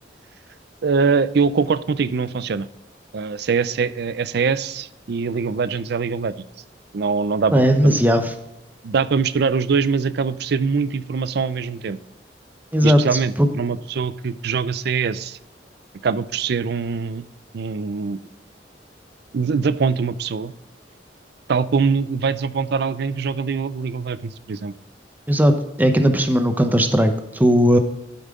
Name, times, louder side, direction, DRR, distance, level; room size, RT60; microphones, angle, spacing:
voice 1, 0.8-2.7 3.1-6.3 6.9-8.0 8.8-12.0 12.8-15.4 16.0-17.2 17.5-18.2 19.3-20.5 21.5-24.7, right 5 dB, 65° right, 16 dB, 0.4 m, -23 dB
voice 2, 7.5-8.3 12.7-13.0 13.4-13.5 25.3-27.8, equal, 10° right, 6 dB, 0.8 m, -17 dB
12.0 x 5.5 x 3.7 m, 0.90 s
head